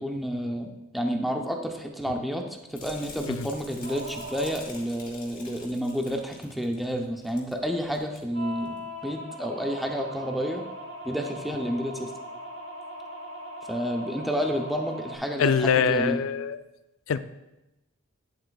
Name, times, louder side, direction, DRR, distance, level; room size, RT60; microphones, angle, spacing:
voice 1, 0.0-8.8 9.0-10.7 11.0-12.1 13.7-16.2, equal, ahead, 2 dB, 0.7 m, -30 dB
sound 1, 2.7-7.6 7.8-8.2 8.6-8.8, left 3 dB, 50° left, 2.1 m, -46 dB
sound 2, 3.8-4.6 8.3-15.2, equal, 65° right, 1.1 m, -39 dB
voice 2, 15.4-16.6 17.1-17.2, left 6 dB, 80° left, 13 dB, 0.4 m, -23 dB
10.5 x 7.6 x 2.3 m, 0.96 s
head